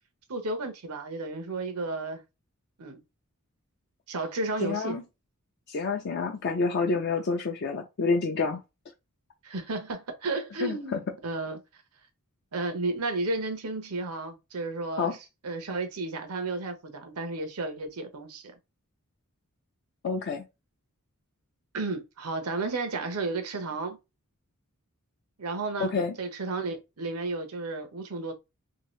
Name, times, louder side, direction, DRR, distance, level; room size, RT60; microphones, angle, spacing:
voice 1, 0.3-2.2 2.8-3.0 4.1-5.0 9.4-11.6 12.5-15.2 15.4-18.4 21.7-24.0 25.4-25.9 26.2-28.3, right 3 dB, 85° right, 0.8 m, -33 dB
voice 2, 4.6-5.0 5.7-8.6 10.6-11.0 15.0-15.2 20.0-20.4 25.8-26.2, left 4 dB, 50° left, 0.4 m, -28 dB
2.8 x 2.7 x 3.0 m
head